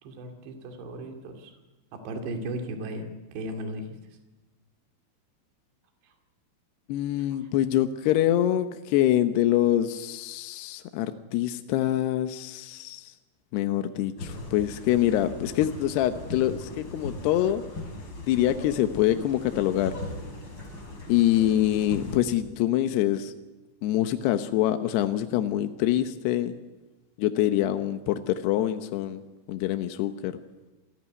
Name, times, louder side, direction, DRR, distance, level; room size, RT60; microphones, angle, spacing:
voice 1, 0.0-1.6 1.9-4.2 6.0-6.1 7.2-7.5, right 1 dB, 65° right, 4 dB, 4.5 m, -37 dB
voice 2, 6.9-13.0 13.5-17.6 18.3-20.0 21.1-23.3 23.8-26.5 27.2-29.2 29.5-30.3, left 12 dB, 75° left, 8 dB, 2.7 m, -25 dB
sound 1, 14.2-22.2, left 2 dB, 25° left, 4.7 m, -39 dB
27.5 x 17.0 x 9.8 m, 1.1 s
omnidirectional pair, 5.5 m